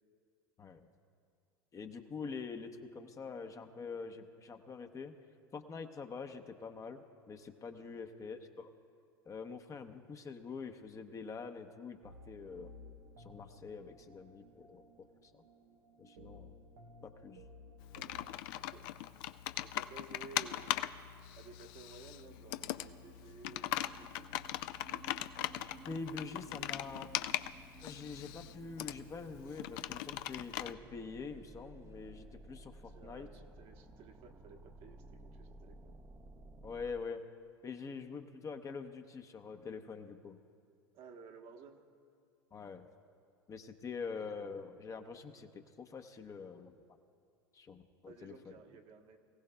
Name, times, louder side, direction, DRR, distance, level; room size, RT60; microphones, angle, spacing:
voice 1, 1.7-5.1 5.5-8.7 9.2-12.7 13.2-15.1 15.3-15.4 16.0-16.5 17.0-17.4 25.9-27.1 27.8-33.3 36.6-37.2 37.6-40.4 42.5-42.9 43.5-46.7 47.5-48.5, left 5 dB, 25° left, 6 dB, 0.8 m, -45 dB
sound 1, 12.0-18.3, left 1 dB, 70° right, 0.9 m, -56 dB
Computer keyboard, 17.8-30.7, left 14 dB, 65° left, 0.4 m, -40 dB
voice 2, 19.6-20.8 21.3-24.3 32.8-36.0 40.9-41.8 48.1-49.2, right 5 dB, 55° right, 4 dB, 1.2 m, -55 dB
sound 2, 22.0-37.0, right 3 dB, 25° right, 0.7 m, -56 dB
22.5 x 15.5 x 2.3 m, 2.3 s
hypercardioid pair, 90°, 12 cm